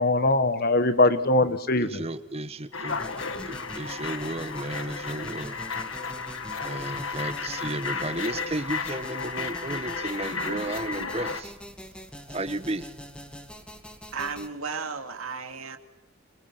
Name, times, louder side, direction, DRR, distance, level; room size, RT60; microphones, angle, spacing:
voice 1, 0.0-2.0, left 2 dB, 45° left, 1.3 m, -22 dB
voice 2, 1.8-3.0 3.5-5.6 6.6-11.5 12.3-12.9, right 2 dB, 30° right, 1.1 m, -33 dB
sound 1, 2.7-11.4, left 5 dB, 75° left, 1.8 m, -33 dB
sound 2, 2.9-14.5, equal, 5° left, 2.0 m, -43 dB
voice 3, 14.1-15.8, right 5 dB, 90° right, 2.6 m, -34 dB
26.5 x 23.5 x 7.7 m
head